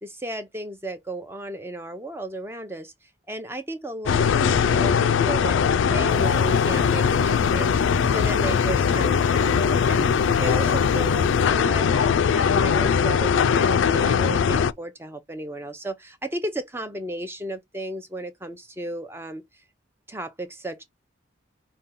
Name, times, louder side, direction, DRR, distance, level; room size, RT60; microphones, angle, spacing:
voice 1, 0.0-19.4 20.1-20.8, right 1 dB, 10° right, 0.5 m, -34 dB
sound 1, 4.1-14.7, left 6 dB, 80° left, 0.3 m, -20 dB
sound 2, 6.1-11.5, right 1 dB, 50° right, 1.1 m, -46 dB
5.3 x 2.2 x 3.6 m
head